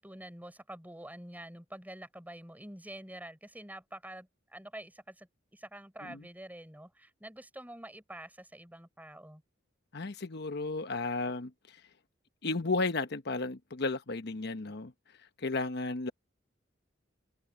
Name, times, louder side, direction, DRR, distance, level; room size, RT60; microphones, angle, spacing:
voice 1, 0.0-9.4, right 1 dB, 10° right, 6.4 m, -47 dB
voice 2, 9.9-11.8 12.4-14.9 15.4-16.1, left 3 dB, 60° left, 1.0 m, -33 dB
open air
head